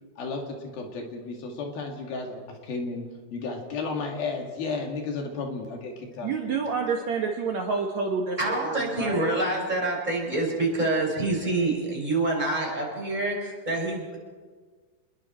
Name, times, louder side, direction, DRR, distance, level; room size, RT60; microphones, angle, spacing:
voice 1, 0.2-3.0 3.3-6.6, left 4 dB, 75° left, 2 dB, 4.0 m, -33 dB
voice 2, 6.2-9.4, right 5 dB, 60° right, 1 dB, 2.2 m, -29 dB
voice 3, 8.4-14.2, right 2 dB, 10° right, -2 dB, 5.2 m, -27 dB
27.5 x 21.5 x 4.4 m, 1.5 s
omnidirectional pair, 4.4 m